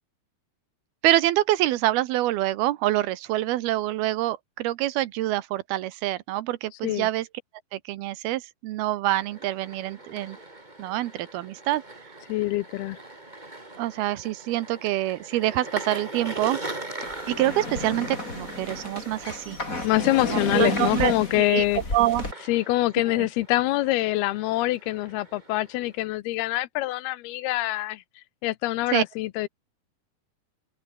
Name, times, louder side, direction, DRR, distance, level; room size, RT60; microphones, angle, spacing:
voice 1, 1.0-7.3 7.7-10.4 10.8-11.8 13.8-16.6 17.3-19.6 20.3-21.6 21.9-22.2 23.2-23.3 28.9-29.0, right 15 dB, 75° right, 2.7 m, -26 dB
sound 1, 9.1-26.0, right 2 dB, 10° right, 2.9 m, -41 dB
voice 2, 12.3-13.0 19.8-21.8 22.5-28.0 28.4-29.5, left 17 dB, 80° left, 2.6 m, -25 dB
sound 2, 17.0-22.3, left 2 dB, 20° left, 5.6 m, -32 dB
open air
omnidirectional pair, 4.7 m